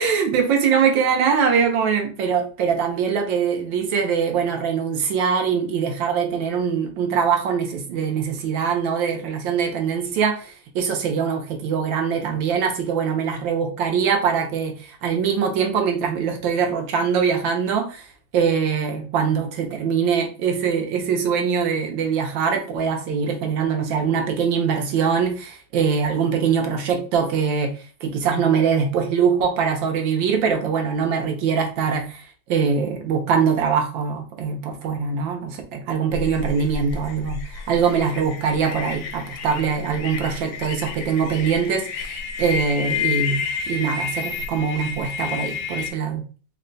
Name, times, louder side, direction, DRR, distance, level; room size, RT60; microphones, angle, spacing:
voice 1, 0.0-18.1 18.3-27.7 28.0-46.2, right 6 dB, 80° right, 1.5 m, -22 dB
sound 1, 36.1-45.9, left 6 dB, 85° left, 1.3 m, -30 dB
4.0 x 2.2 x 3.8 m
omnidirectional pair, 2.0 m